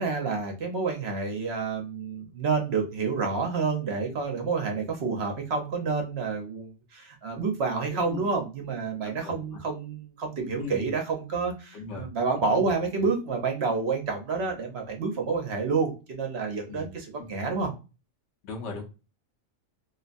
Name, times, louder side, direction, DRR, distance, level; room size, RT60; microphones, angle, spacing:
voice 1, 0.0-17.7, right 4 dB, 60° right, 2 dB, 0.9 m, -29 dB
voice 2, 10.6-10.9 11.7-12.1 16.7-16.9 17.2-17.3 18.4-18.8, left 4 dB, 65° left, 1 dB, 1.0 m, -37 dB
2.8 x 2.1 x 2.4 m, 0.30 s
omnidirectional pair, 1.4 m